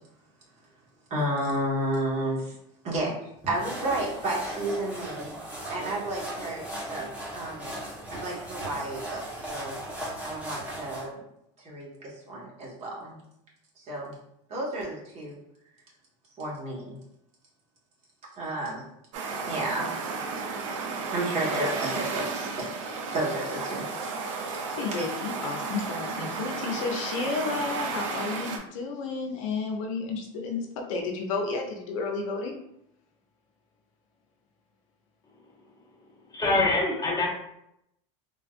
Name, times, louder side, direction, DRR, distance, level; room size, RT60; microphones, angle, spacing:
voice 1, 1.1-2.5 2.8-3.1 3.5-5.3 5.7-7.8 8.1-9.8 10.2-11.2 11.6-13.2 13.8-14.2 14.5-15.4 16.4-17.0 18.4-18.8 19.5-19.9 21.1-22.7 23.1-24.1 24.5-25.0, right 1 dB, 40° right, -4 dB, 1.4 m, -32 dB
sound 1, 3.4-11.1, right 1 dB, 10° right, 1.1 m, -37 dB
sound 2, 19.1-28.6, right 4 dB, 90° right, 0.5 m, -33 dB
voice 2, 24.7-32.5, left 4 dB, 85° left, 2 dB, 0.7 m, -32 dB
voice 3, 36.3-37.3, left 2 dB, 25° left, -2 dB, 0.9 m, -24 dB
3.6 x 2.4 x 2.4 m, 0.78 s
supercardioid pair, 115°, 16 cm